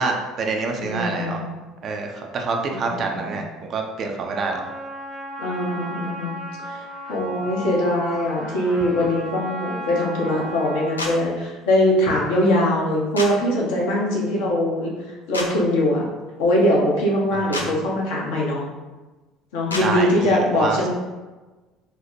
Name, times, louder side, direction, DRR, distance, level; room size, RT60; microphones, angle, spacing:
voice 1, 0.0-1.4 1.8-4.6 17.3-17.8 19.8-20.9, right 4 dB, 40° right, 2 dB, 0.4 m, -27 dB
voice 2, 0.8-1.5 2.7-3.4 5.4-6.3 6.6-14.9 15.3-16.0 16.4-18.6 19.5-20.9, left 1 dB, 65° left, -3 dB, 0.7 m, -22 dB
Trumpet, 4.3-11.3, right 1 dB, ahead, 0.7 m, -35 dB
sound 1, 11.0-11.1 13.1-13.3 15.3-15.5 17.5-17.7 19.7-19.8, left 2 dB, 85° left, 0.3 m, -27 dB
4.3 x 2.1 x 2.6 m, 1.2 s
figure-of-eight pair, 60°, 0 cm